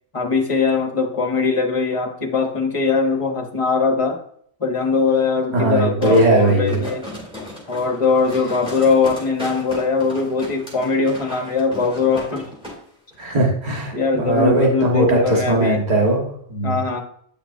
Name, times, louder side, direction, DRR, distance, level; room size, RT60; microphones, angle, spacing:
voice 1, 0.1-4.2 4.6-7.1 7.7-12.5 13.9-15.8 16.6-17.0, left 4 dB, 30° left, 4 dB, 0.9 m, -21 dB
voice 2, 5.5-6.8 13.2-16.8, right 1 dB, 40° right, -2 dB, 1.6 m, -19 dB
sound 1, 6.0-12.8 13.1-13.2, left 1 dB, 5° right, 2.6 m, -35 dB
8.7 x 5.9 x 2.6 m, 0.64 s
omnidirectional pair, 1.1 m